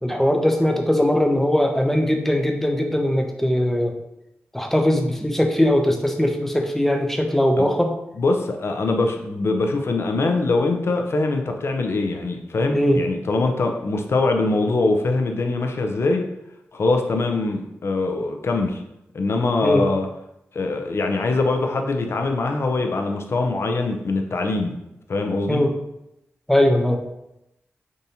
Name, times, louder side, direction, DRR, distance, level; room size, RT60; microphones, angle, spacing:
voice 1, 0.0-3.9 4.5-8.0 12.7-13.0 19.6-19.8 25.5-25.7 26.5-27.0, left 1 dB, 5° left, 3 dB, 0.5 m, -20 dB
voice 2, 8.2-16.3 16.7-18.8 19.1-20.1 20.5-24.7 25.1-25.6, left 3 dB, 60° left, 4 dB, 0.4 m, -23 dB
3.5 x 2.7 x 2.7 m, 0.86 s
cardioid pair, 60°, 5 cm